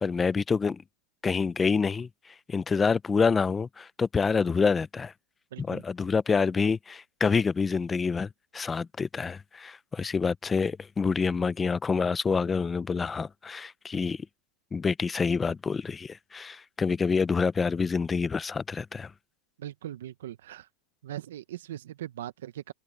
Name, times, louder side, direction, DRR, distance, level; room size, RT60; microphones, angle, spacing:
voice 1, 0.0-0.8 1.2-2.1 2.5-5.1 5.6-14.3 14.7-19.1, left 5 dB, 10° left, 0.4 m, -27 dB
voice 2, 5.5-5.8 19.6-20.7 21.0-22.7, right 12 dB, 85° right, 0.6 m, -40 dB
supercardioid pair, 165°, 0 cm